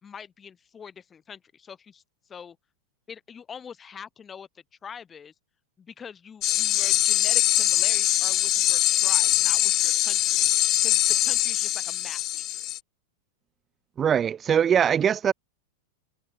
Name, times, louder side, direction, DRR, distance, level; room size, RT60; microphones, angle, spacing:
voice 1, 0.0-2.0 2.3-2.6 3.1-4.5 4.8-5.3 5.8-10.5 10.8-12.7, left 7 dB, 20° left, 3.5 m, -44 dB
sound 1, 6.4-12.8, left 15 dB, 40° left, 1.3 m, -22 dB
voice 2, 14.0-15.3, right 8 dB, 25° right, 0.4 m, -21 dB
hypercardioid pair, 125°, 0 cm